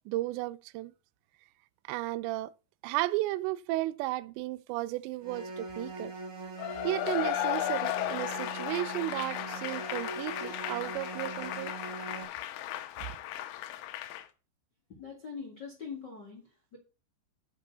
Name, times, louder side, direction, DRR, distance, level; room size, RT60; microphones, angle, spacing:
voice 1, 0.1-0.9 1.9-2.5 2.8-6.1 6.8-11.7, right 17 dB, 85° right, 2.6 m, -34 dB
sound 1, 5.2-12.2, right 3 dB, 30° right, 1.6 m, -41 dB
Cheering / Applause / Crowd, 6.6-14.3, left 14 dB, 90° left, 3.3 m, -35 dB
voice 2, 14.9-16.8, left 6 dB, 55° left, 1.1 m, -43 dB
8.6 x 6.1 x 6.7 m
omnidirectional pair, 5.5 m